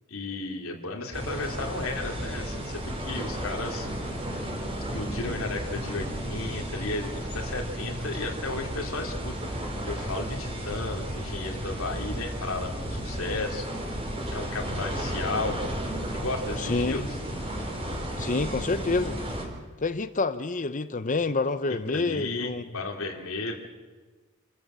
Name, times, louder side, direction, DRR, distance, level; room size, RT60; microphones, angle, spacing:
voice 1, 0.1-3.9 4.9-9.4 9.9-13.7 14.3-15.6 16.1-17.0 21.9-23.7, left 3 dB, 80° left, 2 dB, 2.9 m, -34 dB
sound 1, 1.1-19.5, equal, 25° right, 4.2 m, -33 dB
voice 2, 16.6-17.1 18.2-19.2 19.8-22.6, left 3 dB, 40° left, 11 dB, 0.8 m, -28 dB
28.5 x 14.0 x 7.5 m, 1.3 s
head